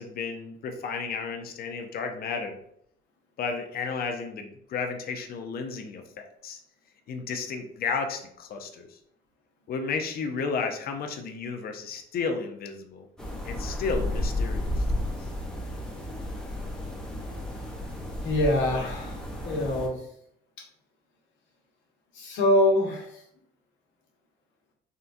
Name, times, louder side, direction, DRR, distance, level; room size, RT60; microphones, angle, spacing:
voice 1, 0.0-2.5 3.4-6.6 7.1-9.0 9.7-13.1 13.4-15.1, left 5 dB, 50° left, 5 dB, 0.6 m, -33 dB
sound 1, 13.2-19.9, left 1 dB, 5° left, 0.6 m, -32 dB
voice 2, 18.2-20.0 22.1-23.2, left 1 dB, 75° left, 0 dB, 1.0 m, -25 dB
3.7 x 2.2 x 2.6 m, 0.69 s
cardioid pair, 105°, 19 cm